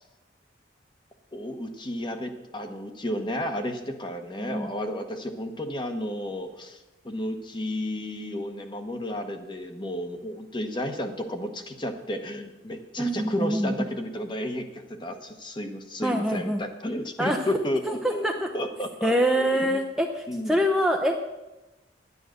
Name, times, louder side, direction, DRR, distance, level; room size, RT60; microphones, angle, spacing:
voice 1, 1.3-19.8 20.3-20.6, left 1 dB, 25° left, 6 dB, 1.1 m, -32 dB
voice 2, 4.4-4.7 13.0-13.9 16.0-16.6 17.2-17.4 17.9-18.5 19.0-21.2, equal, ahead, 2 dB, 0.6 m, -25 dB
10.5 x 9.8 x 6.5 m, 1.0 s
head